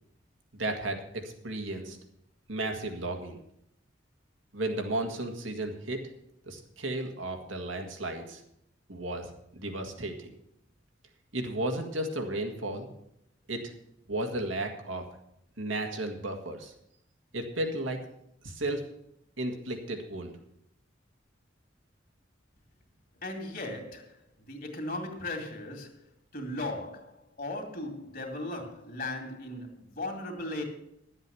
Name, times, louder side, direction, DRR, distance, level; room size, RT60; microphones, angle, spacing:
voice 1, 0.5-2.0 2.5-3.4 4.5-6.0 6.5-8.4 8.9-10.3 11.3-12.9 13.5-13.7 14.1-15.1 15.6-16.7 17.3-18.0 18.4-18.8 19.4-20.3, right 1 dB, 85° right, 4 dB, 1.9 m, -34 dB
voice 2, 23.2-24.2 24.5-26.0 26.3-30.6, left 2 dB, 50° left, 4 dB, 2.3 m, -37 dB
12.0 x 8.1 x 6.9 m, 0.76 s
head